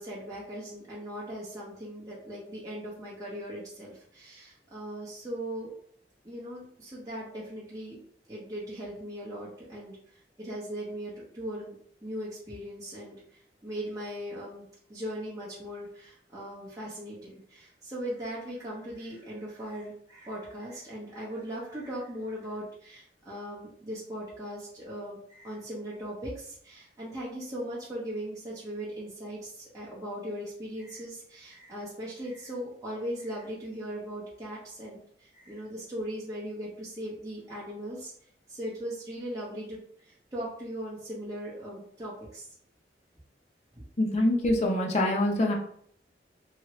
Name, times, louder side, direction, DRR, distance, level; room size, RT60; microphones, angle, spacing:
voice 1, 0.0-5.7 6.2-8.0 8.3-10.0 10.4-11.8 12.0-13.2 13.6-38.1 38.5-42.5 43.7-43.9, equal, 20° right, -8 dB, 0.8 m, -39 dB
voice 2, 44.0-45.5, left 1 dB, 40° left, 0 dB, 0.6 m, -25 dB
2.8 x 2.8 x 3.0 m, 0.63 s
head